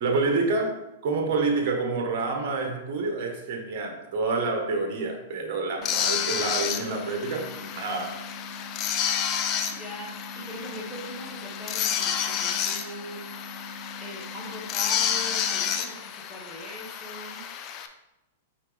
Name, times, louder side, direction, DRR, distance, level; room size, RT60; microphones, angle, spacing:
voice 1, 0.0-8.2 9.4-9.5, right 3 dB, 50° right, 3 dB, 1.3 m, -28 dB
sound 1, 5.8-17.9, left 8 dB, 35° left, 0.6 m, -30 dB
sound 2, 5.8-15.8, left 2 dB, 15° left, 1.1 m, -44 dB
voice 2, 9.7-13.2 14.0-17.4, equal, ahead, -5 dB, 1.9 m, -41 dB
5.7 x 4.8 x 3.5 m, 0.91 s
hypercardioid pair, 120°, 0 cm